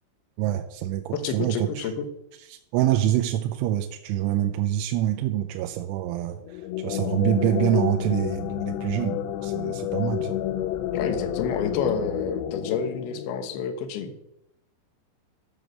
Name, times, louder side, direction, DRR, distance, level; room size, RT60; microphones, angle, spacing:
voice 1, 0.4-1.9 2.5-10.4, right 12 dB, 80° right, 4 dB, 3.0 m, -26 dB
voice 2, 1.1-2.1 10.9-14.1, left 6 dB, 70° left, 8 dB, 2.5 m, -29 dB
sound 1, 6.4-13.9, left 12 dB, 85° left, 2.4 m, -30 dB
14.0 x 6.4 x 6.4 m, 0.83 s
omnidirectional pair, 5.7 m